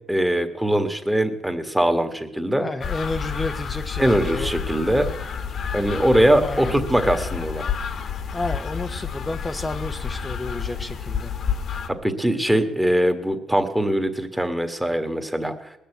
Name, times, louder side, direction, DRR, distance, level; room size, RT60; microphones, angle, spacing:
voice 1, 0.1-2.7 4.0-5.1 5.7-7.6 12.0-15.7, right 1 dB, 5° right, 7 dB, 1.7 m, -21 dB
voice 2, 2.6-4.0 4.3-4.5 6.4-6.7 8.3-11.3, left 2 dB, 20° left, 6 dB, 0.7 m, -31 dB
sound 1, 2.8-11.9, left 7 dB, 60° left, 1.2 m, -30 dB
20.0 x 6.8 x 8.1 m, 0.88 s
cardioid pair, 90°, 0 cm